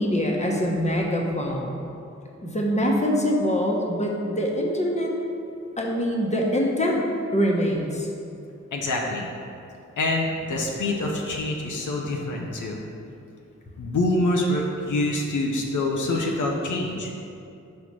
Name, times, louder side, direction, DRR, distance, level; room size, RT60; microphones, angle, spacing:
voice 1, 0.0-1.8 2.4-5.1 5.8-7.1 7.3-8.1, equal, 25° left, -1 dB, 1.1 m, -24 dB
voice 2, 8.7-9.3 10.0-12.8 13.8-17.1, left 2 dB, 80° left, -1 dB, 0.7 m, -26 dB
5.6 x 4.2 x 4.7 m, 2.6 s
cardioid pair, 45°, 30 cm